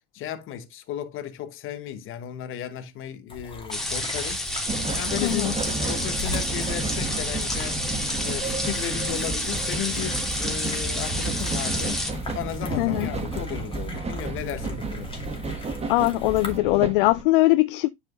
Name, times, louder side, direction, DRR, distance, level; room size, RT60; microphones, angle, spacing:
voice 1, 0.1-4.5 4.9-7.8 8.2-12.0 12.3-15.2, left 11 dB, 45° left, 1.3 m, -35 dB
sound 1, 3.3-16.6, left 2 dB, 15° left, 2.4 m, -41 dB
sound 2, 3.7-12.1, left 1 dB, ahead, 2.4 m, -29 dB
sound 3, 4.7-17.2, right 3 dB, 20° right, 1.6 m, -32 dB
voice 2, 5.2-5.5 12.8-13.1 15.9-17.9, left 20 dB, 65° left, 0.5 m, -21 dB
10.5 x 4.9 x 2.5 m
hypercardioid pair, 80°, 30 cm